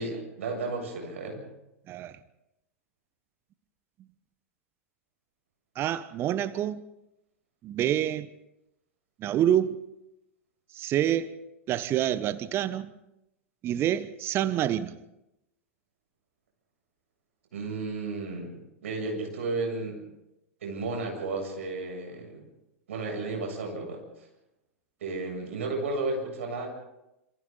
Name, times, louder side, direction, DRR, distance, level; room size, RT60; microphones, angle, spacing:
voice 1, 0.0-1.4 17.5-20.0 20.6-22.4 22.9-24.3 25.0-26.7, right 3 dB, 65° right, 7.9 m, -33 dB
voice 2, 1.9-2.2 5.7-6.8 7.6-8.3 9.2-9.8 10.7-11.3 11.7-12.9 13.6-15.0, right 11 dB, 30° right, 1.0 m, -27 dB
27.0 x 27.0 x 4.1 m
figure-of-eight pair, 95°, 8 cm